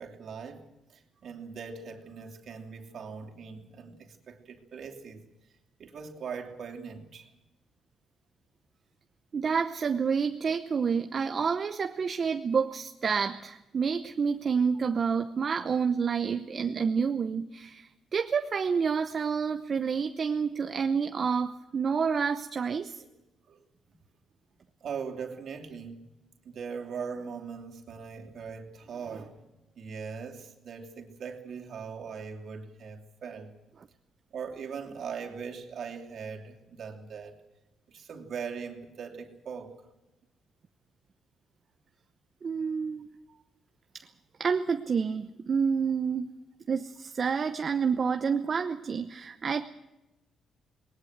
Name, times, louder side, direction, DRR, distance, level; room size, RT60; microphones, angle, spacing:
voice 1, 0.0-5.2 5.8-7.3 23.0-23.1 23.4-23.6 24.8-26.1 26.4-29.3 29.7-33.5 34.3-37.4 37.9-39.8 43.3-43.4, right 6 dB, 60° right, 1 dB, 2.9 m, -40 dB
voice 2, 9.3-23.0 42.4-43.1 43.9-44.1 44.4-46.3 46.7-49.7, right 6 dB, 45° right, 8 dB, 0.8 m, -29 dB
20.0 x 19.0 x 7.9 m, 0.98 s
cardioid pair, 90°, 0 cm